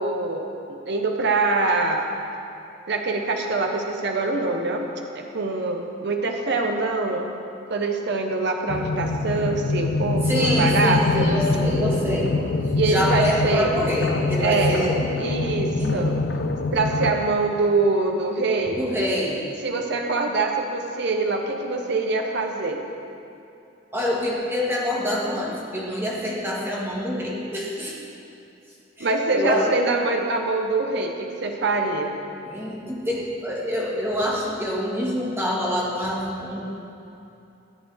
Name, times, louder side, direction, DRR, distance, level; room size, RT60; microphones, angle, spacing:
voice 1, 0.0-2.1 2.9-4.9 5.1-7.3 7.7-11.3 12.7-13.7 14.4-14.8 15.2-16.1 16.7-18.8 19.6-22.8 29.0-32.2, right 3 dB, 65° right, 3 dB, 0.8 m, -24 dB
sound 1, 8.7-17.1, left 3 dB, 65° left, 0.5 m, -25 dB
voice 2, 10.2-12.4 12.8-15.1 15.7-16.1 18.8-19.4 23.9-28.0 29.0-29.7 32.4-36.6, equal, 15° right, -5 dB, 1.9 m, -26 dB
14.0 x 8.7 x 3.5 m, 2.8 s
head